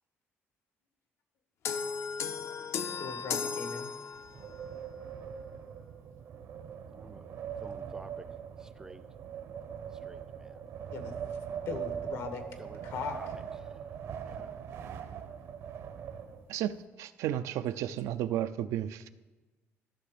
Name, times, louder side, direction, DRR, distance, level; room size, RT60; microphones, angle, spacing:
sound 1, 1.6-4.5, left 6 dB, 60° left, 0.6 m, -35 dB
voice 1, 3.0-3.9 10.9-11.1 11.7-12.4 12.8-13.2, left 5 dB, 75° left, 1.3 m, -39 dB
Wind, 4.1-16.8, right 8 dB, 70° right, 0.9 m, -41 dB
voice 2, 6.9-7.3 7.6-8.3 8.6-9.0 10.1-10.7 12.6-12.9 13.1-13.3 14.2-14.5, right 2 dB, 10° right, 0.4 m, -50 dB
voice 3, 17.0-19.1, right 12 dB, 90° right, 0.4 m, -32 dB
12.5 x 6.2 x 5.1 m
cardioid pair, 130°, 5 cm